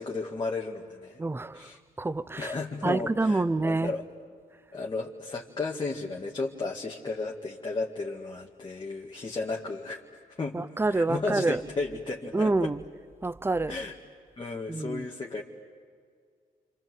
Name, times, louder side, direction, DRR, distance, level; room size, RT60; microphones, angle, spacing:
voice 1, 0.0-1.2 1.5-1.8 2.4-4.0 4.7-10.6 10.9-12.7 13.7-14.0 14.4-15.4, left 3 dB, 30° left, 2.1 m, -34 dB
voice 2, 1.2-1.7 2.0-2.5 2.8-3.9 10.5-11.6 12.3-12.8 13.2-13.8 14.7-15.1, right 2 dB, 15° right, 0.7 m, -27 dB
29.5 x 25.0 x 7.9 m
cardioid pair, 80°, 15 cm